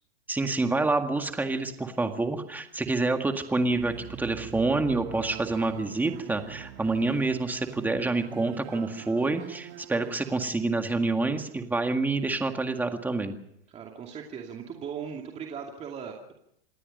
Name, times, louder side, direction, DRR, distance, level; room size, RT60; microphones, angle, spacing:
voice 1, 0.3-13.4, right 3 dB, 5° right, 6 dB, 1.9 m, -27 dB
sound 1, 3.6-10.4, right 11 dB, 35° right, 1.7 m, -45 dB
voice 2, 13.7-16.3, right 7 dB, 20° right, 1 dB, 2.6 m, -38 dB
27.5 x 19.0 x 5.5 m, 0.73 s
supercardioid pair, 150°, 30 cm